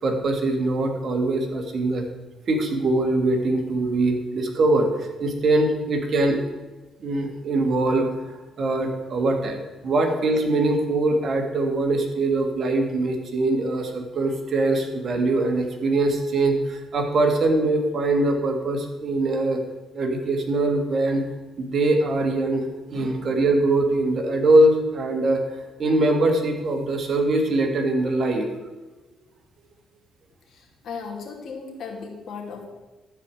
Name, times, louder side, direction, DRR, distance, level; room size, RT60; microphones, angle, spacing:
voice 1, 0.0-2.0 2.5-6.5 7.0-19.6 19.9-21.2 21.6-28.5, right 2 dB, 55° right, 3 dB, 2.0 m, -22 dB
voice 2, 30.5-32.7, left 5 dB, 70° left, 0 dB, 2.4 m, -36 dB
12.5 x 4.9 x 7.7 m, 1.2 s
cardioid pair, 90°, 0 cm